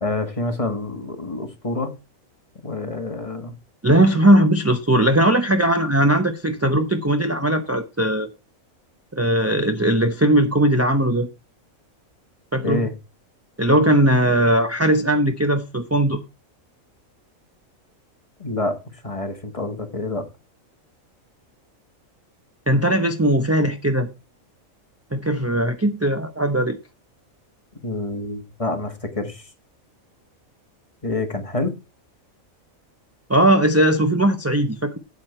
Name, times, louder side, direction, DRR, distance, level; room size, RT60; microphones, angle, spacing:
voice 1, 0.0-1.9 2.6-3.5 12.6-12.9 18.4-20.2 27.8-29.5 31.0-31.7, left 2 dB, 25° left, 1.5 m, -27 dB
voice 2, 3.8-8.3 9.1-11.3 12.5-12.8 13.6-16.2 22.7-24.1 25.1-26.8 33.3-35.0, right 1 dB, 15° right, 0.6 m, -19 dB
8.8 x 8.5 x 4.3 m
omnidirectional pair, 1.4 m